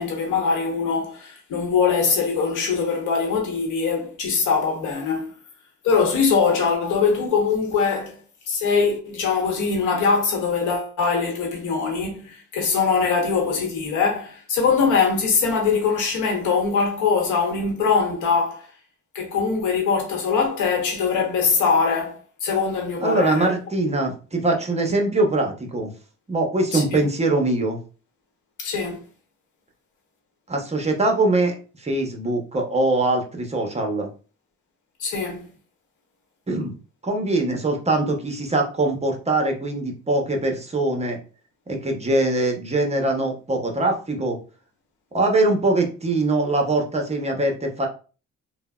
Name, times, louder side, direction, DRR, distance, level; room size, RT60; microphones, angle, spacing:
voice 1, 0.0-5.3 5.8-8.2 8.5-18.6 19.1-23.5 23.8-23.9 26.7-27.0 28.6-29.0 35.0-35.4, left 5 dB, 90° left, 0.9 m, -22 dB
voice 2, 23.0-25.9 26.3-27.8 30.5-34.1 36.5-36.7 37.0-41.2 41.7-44.4 45.1-47.9, right 2 dB, 20° right, 0.7 m, -22 dB
3.2 x 2.0 x 2.2 m
cardioid pair, 90°, 30 cm